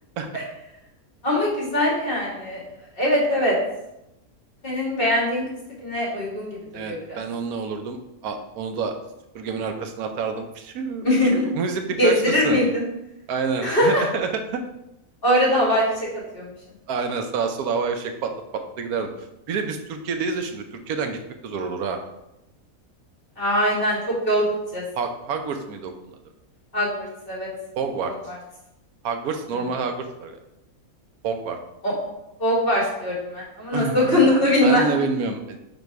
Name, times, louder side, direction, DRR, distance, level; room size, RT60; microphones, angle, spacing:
voice 1, 1.2-2.6 3.0-3.6 4.6-5.4 5.8-6.6 6.8-7.2 11.0-11.5 12.0-12.8 13.6-14.0 15.2-16.1 16.3-16.5 23.4-24.5 24.7-24.8 26.7-27.5 28.3-28.4 31.8-31.9 32.4-35.0, left 1 dB, 40° left, -5 dB, 2.1 m, -21 dB
voice 2, 6.7-8.0 8.2-8.9 9.3-11.1 11.3-12.6 13.3-14.6 16.9-19.1 19.5-22.0 25.0-26.2 27.8-28.1 29.0-30.4 31.2-31.6 33.7-34.2 34.6-35.6, right 5 dB, 90° right, 6 dB, 1.2 m, -28 dB
5.4 x 4.1 x 4.6 m, 0.89 s
omnidirectional pair, 1.5 m